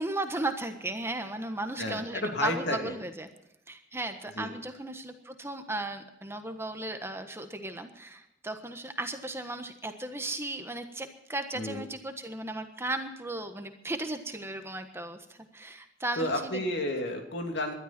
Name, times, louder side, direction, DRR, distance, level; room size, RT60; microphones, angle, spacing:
voice 1, 0.0-3.3 3.7-16.6, right 2 dB, 15° right, 7 dB, 1.3 m, -35 dB
voice 2, 1.8-2.9 4.3-4.5 11.5-11.8 16.2-17.7, left 1 dB, 65° left, 4 dB, 2.9 m, -31 dB
20.0 x 12.5 x 4.4 m, 0.85 s
head